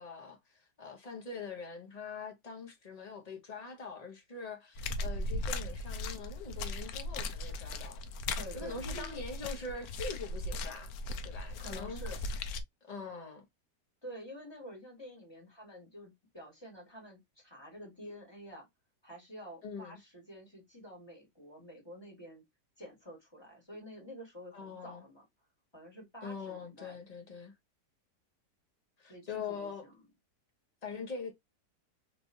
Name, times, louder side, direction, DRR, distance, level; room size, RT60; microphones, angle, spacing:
voice 1, 0.0-8.0 8.5-10.9 11.2-12.3 12.9-13.5 19.6-20.0 24.5-25.1 26.2-27.5 29.0-29.8 30.8-31.3, left 4 dB, 30° left, 0.8 m, -43 dB
sound 1, 4.8-12.6, left 2 dB, 70° left, 1.0 m, -38 dB
voice 2, 8.3-9.2 11.6-12.2 14.0-18.7 19.0-22.4 22.8-25.2 25.7-27.0 29.1-29.9, equal, 15° left, 1.9 m, -49 dB
3.3 x 3.2 x 2.7 m
omnidirectional pair, 1.8 m